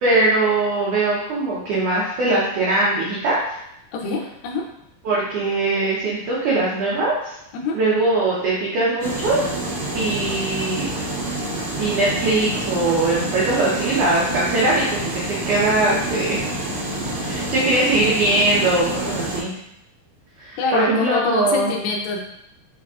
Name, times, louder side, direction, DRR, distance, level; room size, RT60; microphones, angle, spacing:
voice 1, 0.0-3.6 5.0-7.4 7.7-9.4 9.9-10.9 11.8-16.4 17.2-19.6 20.4-21.7, right 2 dB, 80° right, -6 dB, 1.7 m, -21 dB
voice 2, 3.9-4.7 7.5-7.8 20.6-22.2, left 4 dB, 75° left, 1 dB, 2.2 m, -25 dB
sound 1, 9.0-19.4, right 1 dB, 65° right, 1.8 m, -28 dB
6.1 x 3.4 x 2.4 m, 0.82 s
omnidirectional pair, 4.8 m